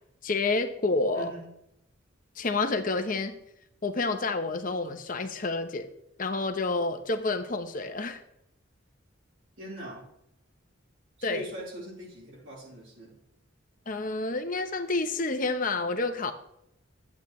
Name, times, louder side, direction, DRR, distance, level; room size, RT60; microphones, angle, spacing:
voice 1, 0.2-1.3 2.4-3.4 3.8-5.9 6.2-8.2 11.2-11.4 13.9-16.3, left 3 dB, 40° left, 6 dB, 0.9 m, -29 dB
voice 2, 1.1-1.5 9.6-10.1 11.2-13.2, right 1 dB, 65° right, -6 dB, 4.0 m, -41 dB
12.0 x 8.3 x 3.2 m, 0.78 s
head